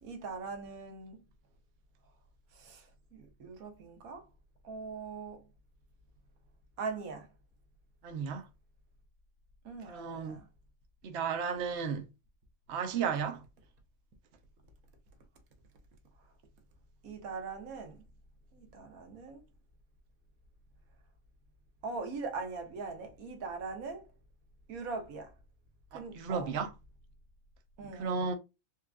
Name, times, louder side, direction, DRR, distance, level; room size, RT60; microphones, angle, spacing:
voice 1, 0.0-1.2 2.5-4.3 4.6-5.5 6.8-7.3 9.6-10.5 17.0-18.0 18.5-19.4 21.8-24.1 24.7-25.3 25.9-26.5 27.8-28.3, right 4 dB, 90° right, 1.4 m, -41 dB
voice 2, 8.0-8.5 9.9-10.4 11.0-12.1 12.7-13.4 25.9-26.7 27.9-28.3, right 6 dB, 60° right, 0.9 m, -34 dB
4.5 x 2.4 x 2.3 m
omnidirectional pair, 1.5 m